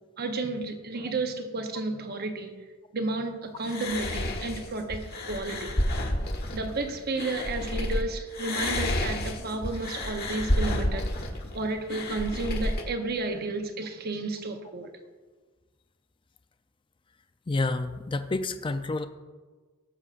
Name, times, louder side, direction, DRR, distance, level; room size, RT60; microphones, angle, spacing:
voice 1, 0.2-2.5 2.9-5.8 6.5-11.1 11.5-14.9, right 3 dB, 50° right, 5 dB, 0.9 m, -32 dB
sound 1, 3.6-8.0 8.3-12.8, left 1 dB, 50° left, 1.2 m, -30 dB
voice 2, 17.5-19.1, left 2 dB, 25° left, 8 dB, 0.4 m, -29 dB
19.0 x 6.6 x 2.5 m, 1.4 s
head